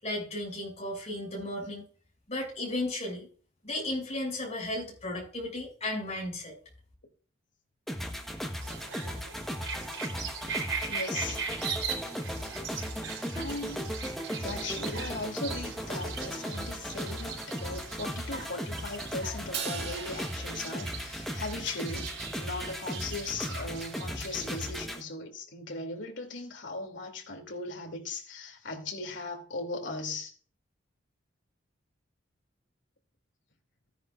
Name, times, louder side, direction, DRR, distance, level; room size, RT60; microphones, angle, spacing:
voice 1, 0.0-1.8 2.3-3.3 3.6-6.5, left 1 dB, 35° left, 6.8 m, -34 dB
sound 1, 7.9-25.0, equal, ahead, 1.2 m, -37 dB
sound 2, 8.6-24.7, right 5 dB, 85° right, 3.9 m, -40 dB
voice 2, 10.9-11.4 13.3-13.9 14.4-30.3, left 3 dB, 65° left, 2.8 m, -38 dB
Crash cymbal, 19.5-21.9, right 7 dB, 60° right, 1.8 m, -40 dB
14.5 x 10.5 x 2.5 m
head